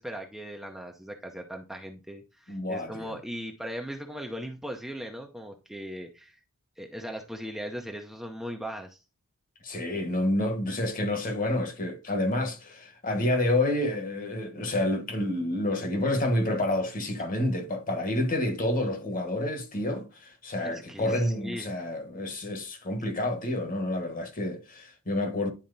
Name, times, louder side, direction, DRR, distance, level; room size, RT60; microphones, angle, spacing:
voice 1, 0.0-6.4 6.8-9.0 20.6-21.7, equal, ahead, 0.6 m, -38 dB
voice 2, 2.5-3.2 9.6-25.5, left 1 dB, 40° left, 1.3 m, -29 dB
10.5 x 4.2 x 2.6 m
head